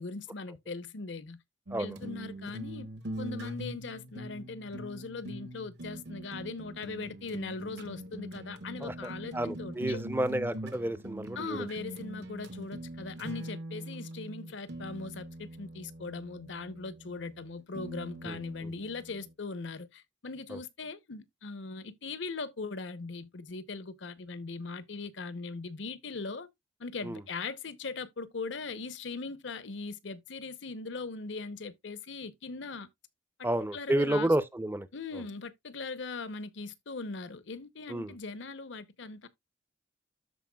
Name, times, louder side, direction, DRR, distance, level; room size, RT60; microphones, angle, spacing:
voice 1, 0.0-1.4 1.8-2.9 3.2-10.0 11.4-26.5 26.8-32.9 33.7-34.3 34.9-39.3, left 4 dB, 75° left, 0.8 m, -40 dB
sound 1, 1.7-19.3, right 1 dB, 60° right, 0.9 m, -43 dB
voice 2, 8.8-11.7 18.2-18.7 20.5-20.6 27.0-27.2 33.4-34.9 37.9-38.1, right 1 dB, 10° right, 0.5 m, -31 dB
13.5 x 4.5 x 2.3 m
head